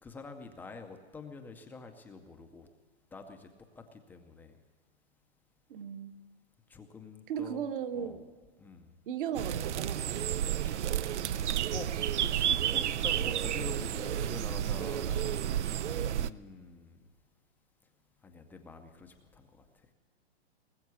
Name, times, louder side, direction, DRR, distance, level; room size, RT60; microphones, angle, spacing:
voice 1, 0.0-2.7 3.1-3.5 3.7-4.6 6.7-7.7 7.9-8.2 8.6-9.0 10.7-11.9 12.2-17.1 18.2-19.9, left 4 dB, 5° left, 5 dB, 0.5 m, -47 dB
voice 2, 5.7-6.2 7.3-8.2 9.1-10.1, right 8 dB, 50° right, 9 dB, 1.2 m, -36 dB
sound 1, 9.3-16.3, right 10 dB, 90° right, 0.6 m, -31 dB
20.0 x 7.2 x 9.5 m, 1.4 s
hypercardioid pair, 155°, 34 cm